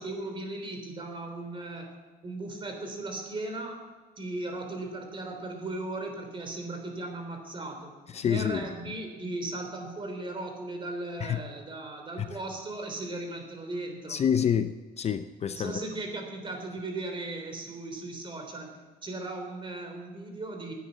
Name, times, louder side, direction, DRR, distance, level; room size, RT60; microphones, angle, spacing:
voice 1, 0.0-2.0 2.2-3.8 4.2-7.9 8.2-14.2 15.5-20.7, right 2 dB, 30° right, 4 dB, 3.2 m, -37 dB
voice 2, 8.1-8.7 11.2-11.4 14.1-15.8, left 8 dB, 40° left, 11 dB, 0.6 m, -28 dB
10.5 x 9.5 x 8.2 m, 1.3 s
cardioid pair, 110°, 17 cm